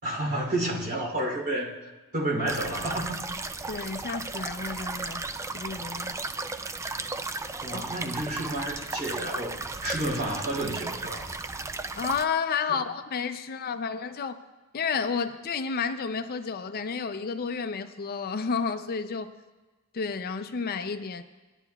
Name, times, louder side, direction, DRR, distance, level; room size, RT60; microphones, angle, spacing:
voice 1, 0.0-1.8 2.1-3.2 7.6-11.3 12.7-12.8, right 1 dB, 50° right, -2 dB, 3.0 m, -30 dB
sound 1, 2.5-12.3, right 3 dB, 15° right, 0.3 m, -35 dB
voice 2, 3.7-5.3 5.5-6.2 7.7-7.8 12.0-14.4 14.7-19.3 19.9-21.2, left 5 dB, 45° left, 10 dB, 0.5 m, -31 dB
19.0 x 11.0 x 2.3 m, 1.2 s
head